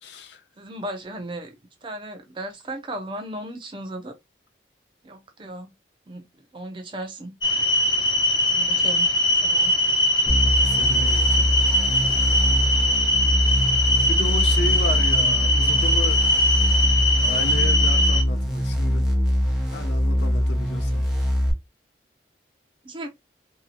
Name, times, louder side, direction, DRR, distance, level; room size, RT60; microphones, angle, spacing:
voice 1, 0.0-0.4 10.4-11.5 14.1-16.2 16.7-16.8 17.2-19.0 19.7-21.0, left 2 dB, 80° left, 0.6 m, -33 dB
voice 2, 0.6-1.6 1.8-4.1 5.0-5.7 6.1-6.2 6.5-7.3 8.5-9.7 22.8-23.1, right 1 dB, 30° right, 0.4 m, -36 dB
sound 1, 7.4-18.2, left 1 dB, 25° left, 0.5 m, -21 dB
sound 2, 10.3-21.5, equal, 5° right, 0.8 m, -23 dB
2.8 x 2.7 x 2.4 m
head